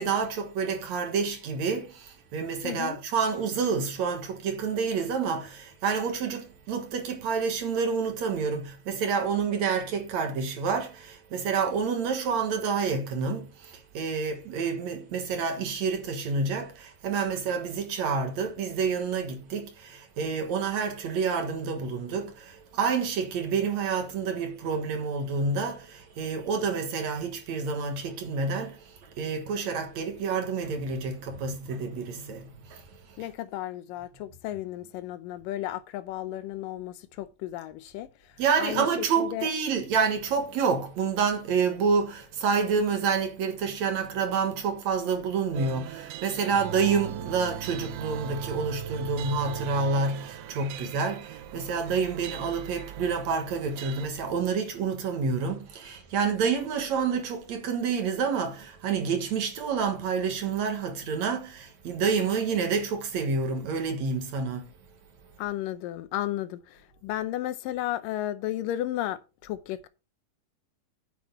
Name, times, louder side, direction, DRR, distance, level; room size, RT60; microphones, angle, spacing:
voice 1, 0.0-33.3 38.4-64.7, right 5 dB, 60° right, 2.5 m, -28 dB
voice 2, 2.6-3.0 33.2-38.3 38.6-39.5 65.4-69.9, left 13 dB, 80° left, 2.5 m, -34 dB
sound 1, 45.5-54.1, right 10 dB, 85° right, 1.4 m, -39 dB
9.4 x 8.1 x 4.1 m
omnidirectional pair, 3.9 m